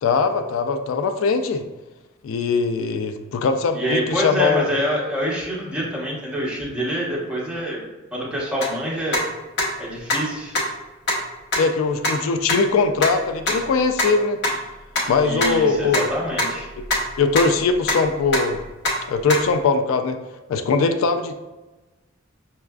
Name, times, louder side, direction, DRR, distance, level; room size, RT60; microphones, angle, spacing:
voice 1, 0.0-1.6 2.2-4.7 11.6-14.4 15.1-16.1 17.2-18.6 19.1-20.2 20.5-21.4, left 4 dB, 85° left, 7 dB, 0.3 m, -21 dB
voice 2, 3.7-7.8 8.1-9.2 9.8-10.5 15.2-16.7, equal, 5° right, -6 dB, 0.9 m, -26 dB
sound 1, 8.6-8.7 9.1-9.2 9.6-9.7 10.1-10.2 10.5-10.6 11.1-11.2 11.5-11.6 12.0-12.1 12.5-12.6 13.0-13.1 13.5-13.6 14.0-14.1 14.4-14.5 15.0-15.1 15.4-15.5 15.9-16.0 16.4-16.5 16.8-17.0 17.4-17.9 18.3-18.6 18.8-18.9 19.3-19.4, left 2 dB, 55° left, 0.8 m, -21 dB
5.5 x 2.4 x 2.2 m, 1.1 s
head